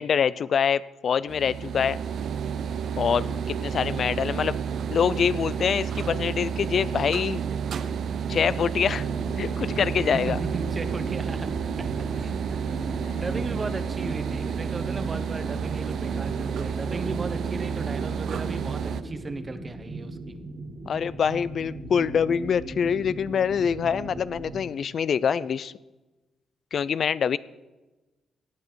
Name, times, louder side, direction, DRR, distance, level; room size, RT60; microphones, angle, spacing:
voice 1, 0.0-2.0 3.0-4.6 4.9-7.4 8.3-9.1 9.4-10.4 20.9-25.7 26.7-27.4, left 7 dB, 60° left, 18 dB, 0.4 m, -25 dB
sound 1, 1.3-19.0, right 7 dB, 70° right, 0.6 m, -30 dB
sound 2, 8.7-24.6, right 2 dB, 55° right, 2.8 m, -38 dB
voice 2, 10.1-11.9 12.1-12.7 13.1-20.4, right 3 dB, 35° right, 10 dB, 1.1 m, -36 dB
17.0 x 8.6 x 4.6 m, 1.1 s
supercardioid pair, 65°, 0 cm